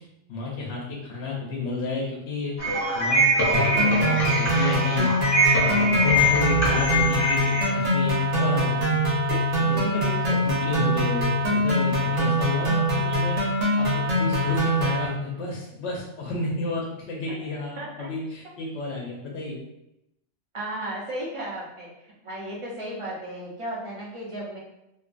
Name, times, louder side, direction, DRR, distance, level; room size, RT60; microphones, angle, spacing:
voice 1, 0.3-2.5 2.9-5.1 5.6-9.1 9.7-13.4 13.8-19.6, left 3 dB, 70° left, -3 dB, 0.9 m, -31 dB
sound 1, 2.6-7.6, equal, 20° left, 0.5 m, -23 dB
sound 2, 3.5-15.1, equal, 80° right, 1.1 m, -23 dB
voice 2, 9.6-10.4 17.3-17.4 17.8-18.1 20.5-24.6, right 1 dB, 40° right, -5 dB, 0.5 m, -35 dB
2.6 x 2.2 x 2.4 m, 0.85 s
omnidirectional pair, 1.2 m